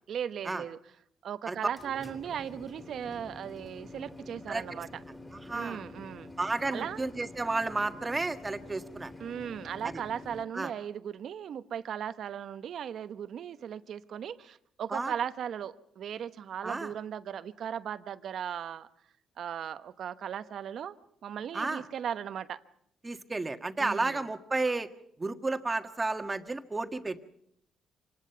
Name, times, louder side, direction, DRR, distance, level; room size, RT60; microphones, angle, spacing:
voice 1, 0.1-0.8 1.2-4.9 5.5-6.3 6.7-7.0 9.2-18.9 19.4-21.0 21.2-22.6 23.8-24.2, right 8 dB, 65° right, 12 dB, 1.0 m, -37 dB
sound 1, 1.5-10.4, left 2 dB, 10° left, 3.2 m, -47 dB
voice 2, 5.3-5.8 6.4-9.1 9.8-9.9 10.5-10.7 14.9-15.1 16.6-16.9 21.5-21.8 23.0-24.9 25.2-27.2, right 3 dB, 20° right, 7 dB, 1.6 m, -32 dB
25.5 x 19.5 x 5.8 m, 0.72 s
cardioid pair, 90°, 0 cm